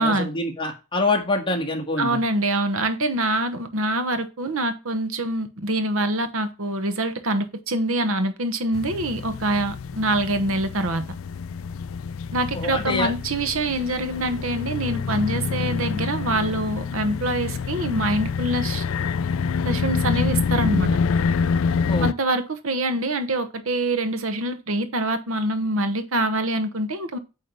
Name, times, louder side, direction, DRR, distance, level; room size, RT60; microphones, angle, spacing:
voice 1, 0.0-2.2 12.5-13.1 21.9-22.1, left 2 dB, 25° left, 1.6 m, -25 dB
voice 2, 2.0-11.0 12.3-18.8 19.6-20.9 22.0-27.2, right 1 dB, 70° right, 1.1 m, -25 dB
sound 1, 8.7-22.1, left 5 dB, 65° left, 0.4 m, -27 dB
8.9 x 3.2 x 5.2 m
head